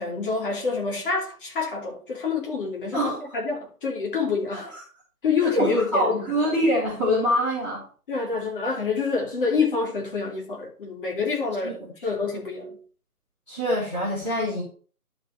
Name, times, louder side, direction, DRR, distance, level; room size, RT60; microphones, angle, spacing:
voice 1, 0.0-4.7 5.2-6.3 8.1-12.8, left 4 dB, 35° left, 3.0 m, -27 dB
voice 2, 5.5-7.8 11.6-11.7 13.5-14.6, equal, 5° left, 1.3 m, -24 dB
11.0 x 3.8 x 6.5 m
figure-of-eight pair, 150°, 46 cm